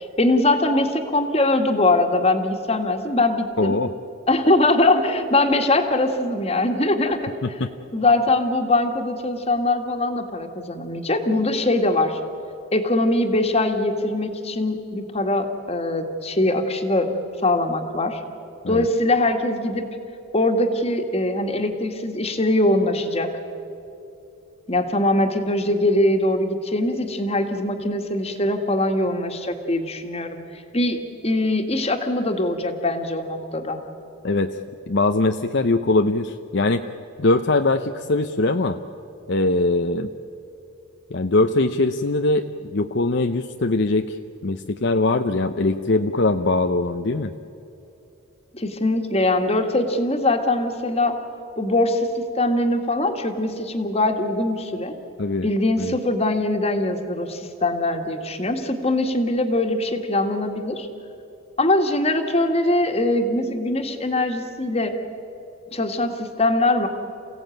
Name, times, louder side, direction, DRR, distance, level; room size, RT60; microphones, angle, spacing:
voice 1, 0.0-3.8 4.3-7.3 7.9-12.2 12.7-17.1 17.4-18.2 18.7-19.9 20.3-23.3 24.7-31.0 31.2-33.8 48.5-51.2 51.6-54.9 55.4-60.9 61.6-64.9 65.7-66.9, left 2 dB, 30° left, 5 dB, 1.8 m, -22 dB
voice 2, 3.6-3.9 7.4-7.7 18.6-18.9 34.2-34.6 34.9-36.8 37.2-38.8 39.3-40.1 41.1-42.4 42.7-44.2 44.4-47.3 55.2-55.5 55.8-55.9, left 2 dB, 55° left, 7 dB, 0.7 m, -21 dB
29.0 x 16.5 x 9.1 m, 2.9 s
head